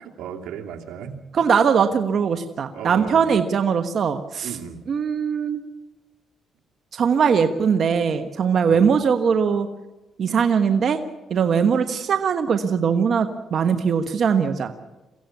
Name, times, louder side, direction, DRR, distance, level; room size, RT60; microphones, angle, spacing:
voice 1, 0.0-1.2 2.7-3.4 4.4-4.8 8.7-8.9, right 7 dB, 80° right, 1 dB, 2.7 m, -35 dB
voice 2, 1.3-4.5 4.9-5.6 6.9-9.7 10.2-11.0 11.3-14.7, right 6 dB, 55° right, 7 dB, 1.3 m, -20 dB
23.5 x 15.5 x 8.4 m, 1.1 s
cardioid pair, 90°, 0 cm